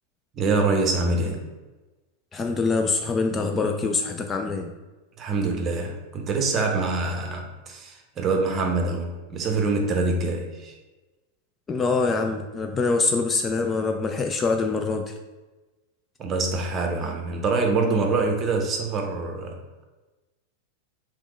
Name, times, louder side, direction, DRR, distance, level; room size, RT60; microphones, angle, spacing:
voice 1, 0.3-1.4 5.2-10.8 16.2-19.6, right 3 dB, 30° right, 3 dB, 0.8 m, -25 dB
voice 2, 2.3-4.7 11.7-15.2, left 4 dB, 20° left, 4 dB, 0.3 m, -24 dB
3.5 x 3.1 x 4.8 m, 1.2 s
figure-of-eight pair, 90°, 0 cm